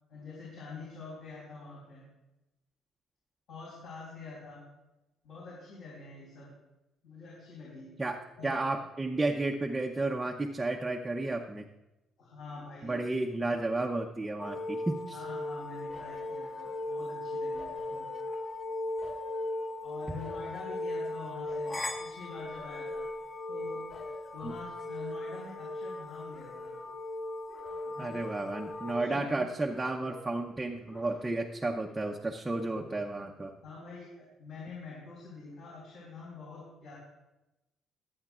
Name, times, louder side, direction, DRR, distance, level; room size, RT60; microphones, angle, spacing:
voice 1, 0.1-2.1 3.5-4.6 5.2-6.5 7.0-7.9 8.4-8.5 12.2-13.0 15.1-18.1 19.8-21.7 22.0-23.1 23.5-23.8 24.3-26.8 27.9-28.2 28.9-29.5 32.7-32.9 33.6-37.0, left 3 dB, 65° left, -5 dB, 4.6 m, -46 dB
voice 2, 8.4-11.7 12.8-15.2 24.4-24.5 28.0-33.5, right 2 dB, 10° right, 0 dB, 0.7 m, -32 dB
sound 1, 14.4-28.9, left 2 dB, 30° left, 1.1 m, -38 dB
sound 2, 15.9-17.2 17.5-18.6 19.0-21.1 21.4-22.0 22.5-23.6 23.9-26.0 26.3-27.0 27.5-28.3 28.6-29.4 29.7-30.4 30.9-31.7 32.0-32.2, left 3 dB, 50° left, 2.7 m, -53 dB
25.0 x 8.6 x 2.4 m, 0.98 s
cardioid pair, 160°, 0 cm